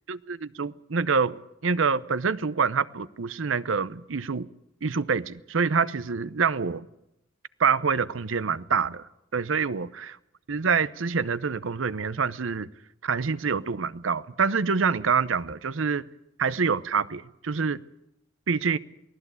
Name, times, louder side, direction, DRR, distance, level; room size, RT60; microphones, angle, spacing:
voice 1, 0.1-4.5 4.8-6.9 7.6-9.1 9.3-10.2 10.5-12.7 13.0-16.1 16.4-17.8 18.5-18.8, right 5 dB, 75° right, 0.7 m, -26 dB
23.0 x 16.5 x 8.3 m
head